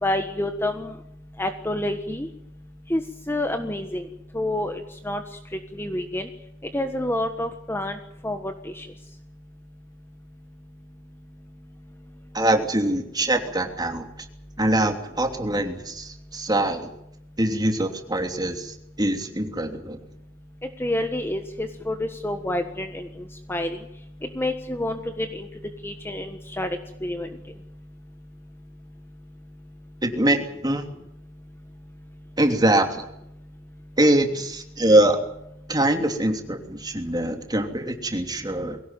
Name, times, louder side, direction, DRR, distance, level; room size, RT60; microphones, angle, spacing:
voice 1, 0.0-1.0 1.4-2.3 2.9-3.0 3.3-4.1 4.3-5.2 5.8-6.3 6.7-8.0 8.2-8.9 20.8-23.1 23.5-23.8 24.3-25.5 25.8-27.3, left 1 dB, 10° left, 7 dB, 1.4 m, -28 dB
voice 2, 12.3-14.1 14.6-16.9 17.4-20.0 30.0-30.8 32.4-33.0 34.0-35.2 35.7-38.8, right 1 dB, 20° right, 5 dB, 3.0 m, -23 dB
22.5 x 17.5 x 9.1 m, 0.79 s
head